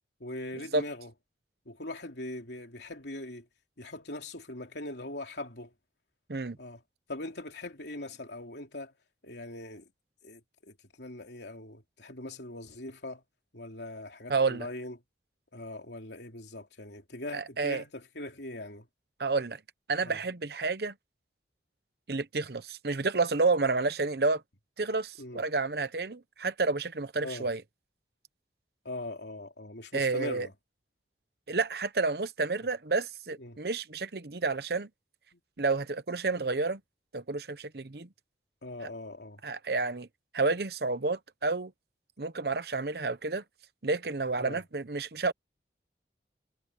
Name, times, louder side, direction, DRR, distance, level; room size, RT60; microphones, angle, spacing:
voice 1, 0.2-1.1 1.6-3.5 3.8-5.7 6.6-6.8 7.1-8.9 9.2-9.9 10.2-13.2 13.5-15.0 15.5-18.9 20.0-20.2 25.2-25.4 27.2-27.5 28.8-30.5 33.4-33.6 35.3-35.4 38.6-39.4 44.4-44.6, left 2 dB, 70° left, 3.2 m, -41 dB
voice 2, 14.3-14.7 17.3-17.8 19.2-19.6 19.9-20.9 22.1-24.4 24.8-27.6 29.9-30.5 31.5-34.9 35.6-36.8 37.1-38.1 39.4-40.1 40.3-41.7 42.2-43.4 43.8-45.3, right 3 dB, 60° right, 0.9 m, -30 dB
head